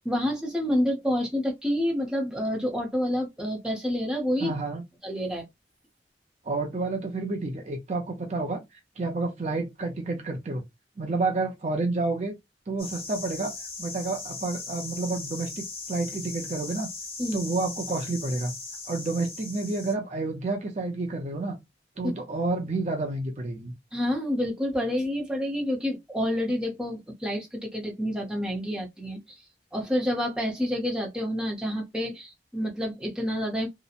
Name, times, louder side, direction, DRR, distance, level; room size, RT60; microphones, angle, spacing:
voice 1, 0.0-4.5 5.0-5.4 17.2-17.4 22.0-22.1 23.9-29.4 29.7-33.7, equal, 5° right, 0.7 m, -28 dB
voice 2, 4.4-4.8 6.4-10.6 11.0-12.4 12.7-16.9 17.3-18.5 18.9-21.6 22.0-23.7, right 3 dB, 40° right, 0.5 m, -30 dB
sound 1, 12.8-19.9, left 3 dB, 35° left, 0.9 m, -38 dB
2.8 x 2.1 x 2.4 m
head